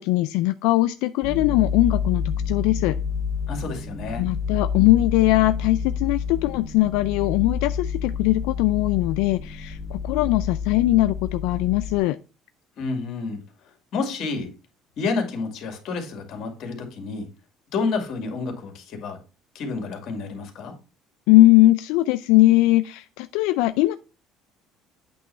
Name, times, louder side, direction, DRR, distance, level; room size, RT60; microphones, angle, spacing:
voice 1, 0.0-3.0 4.2-12.2 21.3-23.9, left 17 dB, 90° left, 0.3 m, -20 dB
sound 1, 1.2-12.0, left 6 dB, 10° left, 1.7 m, -29 dB
voice 2, 3.5-4.2 12.8-13.4 13.9-14.5 15.0-17.3 17.7-19.2 19.5-20.7, left 4 dB, 50° left, 2.0 m, -29 dB
8.5 x 3.1 x 5.6 m
cardioid pair, 145°, 0 cm